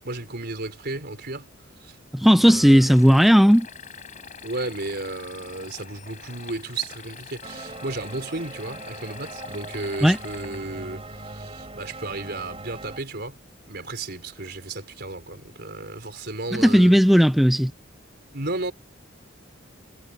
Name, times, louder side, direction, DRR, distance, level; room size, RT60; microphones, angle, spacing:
voice 1, 0.0-1.5 1.8-2.0 2.4-2.8 4.4-13.4 13.7-16.9 18.3-18.7, right 2 dB, 55° right, 4.3 m, -33 dB
voice 2, 2.1-3.7 10.0-10.2 16.5-17.7, equal, ahead, 0.7 m, -15 dB
sound 1, 2.6-10.6, left 6 dB, 40° left, 7.0 m, -44 dB
sound 2, 7.4-13.0, right 2 dB, 30° right, 6.0 m, -40 dB
head